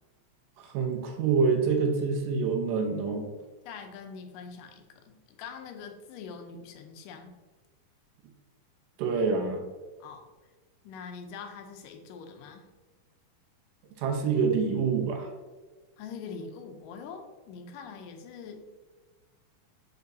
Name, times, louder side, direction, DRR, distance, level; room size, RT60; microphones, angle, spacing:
voice 1, 0.6-3.3 9.0-9.6 14.0-15.3, right 5 dB, 85° right, 3 dB, 2.5 m, -26 dB
voice 2, 3.6-7.4 10.0-10.3 10.8-12.7 16.0-18.7, left 5 dB, 90° left, 5 dB, 2.3 m, -43 dB
6.8 x 5.2 x 2.7 m, 1.3 s
omnidirectional pair, 3.7 m